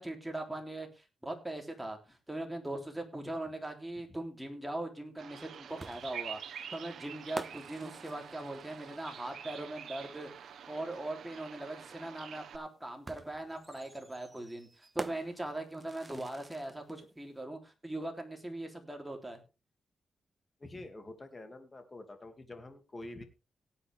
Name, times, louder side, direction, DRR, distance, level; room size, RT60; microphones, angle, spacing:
voice 1, 0.0-19.4, right 1 dB, 10° right, 3 dB, 3.4 m, -40 dB
Bird vocalization bird call bird song, 5.2-12.6, right 8 dB, 75° right, 1.1 m, -47 dB
sound 1, 5.8-9.4 10.9-11.0 13.1-17.0, right 3 dB, 25° right, 0.6 m, -47 dB
voice 2, 20.6-23.2, left 2 dB, 30° left, 7 dB, 2.6 m, -47 dB
18.0 x 8.4 x 3.6 m, 0.30 s
cardioid pair, 95°, 0 cm